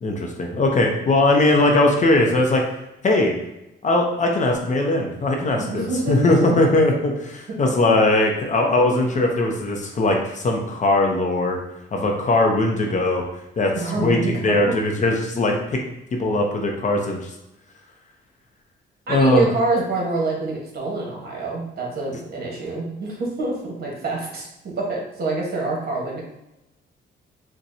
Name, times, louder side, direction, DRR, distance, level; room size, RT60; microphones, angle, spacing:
voice 1, 0.0-2.6 3.0-3.3 3.8-11.6 11.9-13.2 13.6-14.2 14.4-15.8 16.2-17.3 19.1-19.5, left 2 dB, 40° left, 1 dB, 0.6 m, -20 dB
voice 2, 5.6-6.6 13.7-14.6 19.1-26.2, right 3 dB, 50° right, -2 dB, 1.2 m, -26 dB
4.1 x 2.2 x 2.6 m, 0.90 s
cardioid pair, 90°, 20 cm